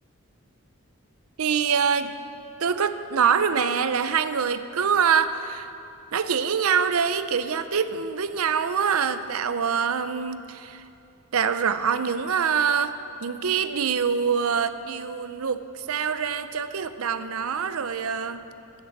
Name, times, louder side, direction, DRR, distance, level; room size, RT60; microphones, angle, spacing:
voice 1, 1.4-2.1 2.6-5.7 6.1-10.8 11.3-13.0 13.2-18.4, right 6 dB, 85° right, 12 dB, 0.6 m, -25 dB
14.5 x 6.7 x 7.2 m, 2.7 s
head